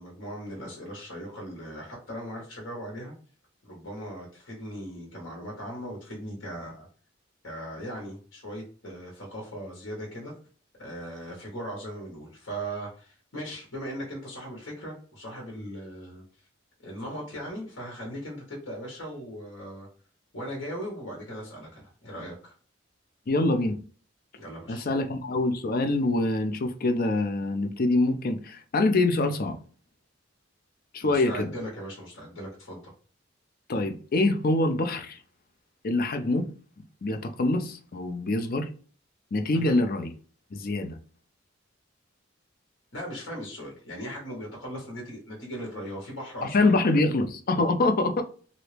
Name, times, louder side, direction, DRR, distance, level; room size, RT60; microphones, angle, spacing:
voice 1, 0.0-3.1 3.6-6.9 7.4-10.3 10.8-16.2 16.8-19.9 20.3-22.5 24.4-24.8 31.0-32.9 39.5-39.8 42.9-46.8, equal, 70° left, 1.3 m, -38 dB
voice 2, 23.3-23.8 24.7-29.6 30.9-31.5 33.7-35.2 35.8-36.5 37.0-38.7 39.3-40.1 40.5-41.0 46.4-48.2, left 2 dB, 50° left, 0.5 m, -25 dB
3.0 x 2.7 x 3.2 m
head